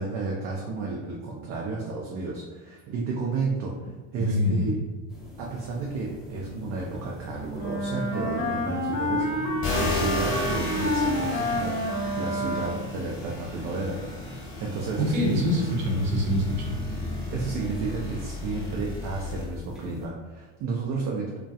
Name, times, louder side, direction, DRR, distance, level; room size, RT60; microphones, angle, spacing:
voice 1, 0.0-4.8 5.4-14.0 14.6-15.3 15.6-15.7 17.3-21.4, right 3 dB, 45° right, -2 dB, 0.5 m, -32 dB
voice 2, 4.2-4.7 15.0-16.8, left 1 dB, 80° right, -2 dB, 0.8 m, -25 dB
sound 1, 5.1-20.1, left 1 dB, ahead, 0.7 m, -42 dB
Wind instrument woodwind instrument, 7.5-13.0, left 1 dB, 50° left, 0.8 m, -28 dB
sound 2, 9.6-19.5, left 2 dB, 30° left, 1.1 m, -34 dB
2.2 x 2.1 x 2.7 m, 1.3 s
hypercardioid pair, 70°, 39 cm